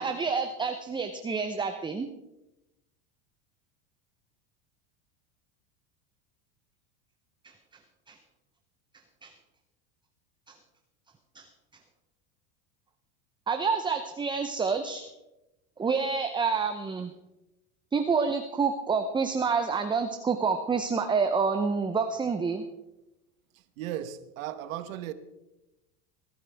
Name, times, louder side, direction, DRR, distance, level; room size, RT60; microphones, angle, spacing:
voice 1, 0.0-2.1 7.4-7.5 8.1-8.2 9.2-9.3 10.5-10.6 11.3-11.5 13.5-15.1 15.8-17.1 17.9-22.6, right 5 dB, 10° right, 0.7 m, -28 dB
voice 2, 23.5-25.1, right 11 dB, 80° right, 1.3 m, -36 dB
22.0 x 12.5 x 3.5 m
supercardioid pair, 125°, 40 cm